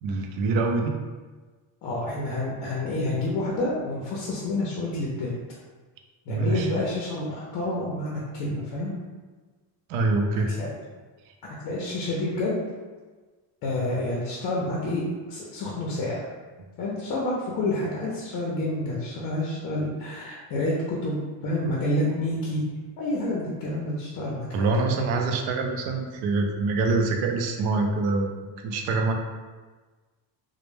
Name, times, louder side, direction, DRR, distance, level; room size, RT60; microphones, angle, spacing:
voice 1, 0.0-1.0 6.3-6.7 9.9-10.5 24.5-29.1, right 3 dB, 80° right, 3 dB, 0.5 m, -25 dB
voice 2, 1.8-5.3 6.3-8.9 10.5-10.7 11.6-12.6 13.6-16.3 16.8-22.6 23.0-24.7, left 1 dB, 55° left, -4 dB, 0.5 m, -28 dB
2.1 x 2.1 x 3.0 m, 1.3 s
cardioid pair, 160°, 46 cm